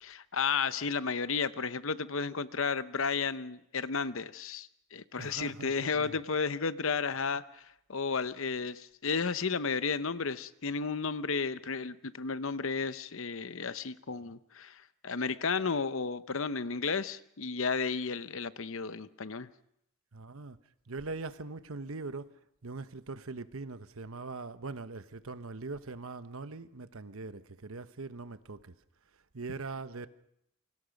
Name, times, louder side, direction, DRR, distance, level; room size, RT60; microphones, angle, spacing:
voice 1, 0.0-7.6 7.9-19.5, left 5 dB, 60° left, 0.8 m, -33 dB
voice 2, 5.2-6.2 20.1-20.6 20.9-22.3 22.6-28.7 29.3-30.1, right 3 dB, 65° right, 1.0 m, -41 dB
28.5 x 24.5 x 5.2 m
head